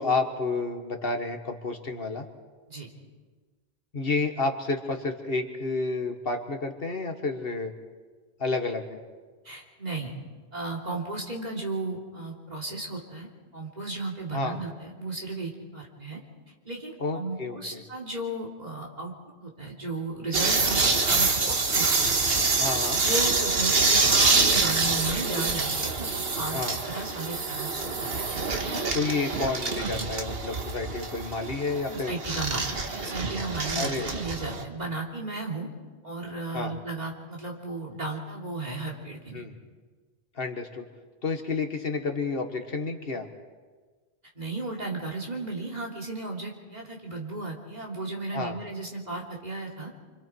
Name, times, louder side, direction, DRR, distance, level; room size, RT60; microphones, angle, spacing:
voice 1, 0.0-2.2 3.9-7.7 8.4-9.0 14.3-14.6 17.0-17.8 22.6-23.0 26.5-26.8 28.9-32.2 33.8-34.2 36.5-36.8 39.3-39.6 40.4-40.8 41.2-43.3 48.3-48.6, left 3 dB, 65° left, 5 dB, 1.8 m, -30 dB
voice 2, 9.4-10.1 10.5-16.2 16.6-19.1 19.4-22.6 23.0-28.2 31.9-35.7 36.0-39.4 44.3-49.9, right 2 dB, 40° right, -1 dB, 3.4 m, -35 dB
sound 1, 20.3-34.6, right 3 dB, 65° right, 1.7 m, -26 dB
27.5 x 25.5 x 4.7 m, 1.4 s
omnidirectional pair, 1.1 m